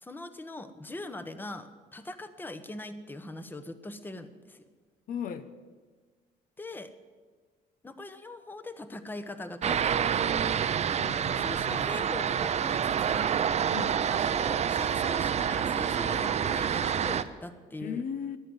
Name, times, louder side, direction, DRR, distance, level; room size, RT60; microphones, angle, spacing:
voice 1, 0.0-4.6 6.6-6.9 7.8-10.6 11.4-13.3 14.1-18.0, left 2 dB, 10° left, 1.0 m, -41 dB
voice 2, 5.1-5.5 11.0-11.9 13.7-14.0 17.8-18.4, left 7 dB, 55° left, 0.9 m, -37 dB
sound 1, 9.6-17.2, right 8 dB, 40° right, 0.7 m, -28 dB
16.0 x 11.0 x 7.9 m
cardioid pair, 110°, 17 cm